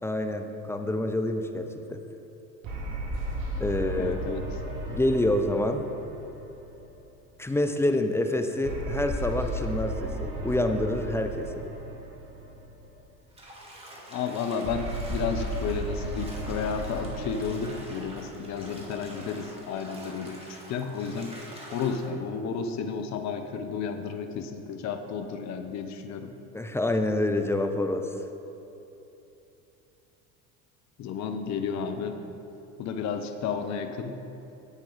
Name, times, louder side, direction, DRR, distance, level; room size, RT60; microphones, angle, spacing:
voice 1, 0.0-2.0 3.6-4.3 4.9-5.9 7.4-11.5 26.5-28.1, left 1 dB, 5° left, 6 dB, 0.3 m, -27 dB
sound 1, 2.6-7.2 8.6-13.0 14.6-19.2, right 1 dB, 65° right, 1.8 m, -35 dB
voice 2, 4.0-4.4 14.1-21.3 21.7-26.3 31.0-32.2 32.8-34.2, left 6 dB, 40° left, 7 dB, 0.7 m, -32 dB
Bathtub (filling or washing), 13.3-22.1, right 1 dB, 15° right, 2.1 m, -46 dB
8.2 x 8.1 x 4.0 m, 3.0 s
hypercardioid pair, 75°, 44 cm